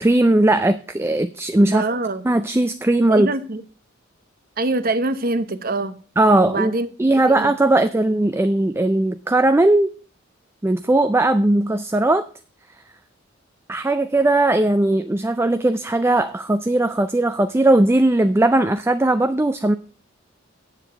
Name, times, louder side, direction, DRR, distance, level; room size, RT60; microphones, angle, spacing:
voice 1, 0.0-1.8 2.3-3.3 6.2-6.7 7.0-9.9 10.6-12.3 13.7-19.8, right 2 dB, 10° right, 0.4 m, -18 dB
voice 2, 1.7-2.2 3.1-3.6 4.6-6.0 6.4-6.9 7.3-8.0, right 2 dB, 50° right, 1.0 m, -25 dB
8.2 x 7.3 x 6.6 m
head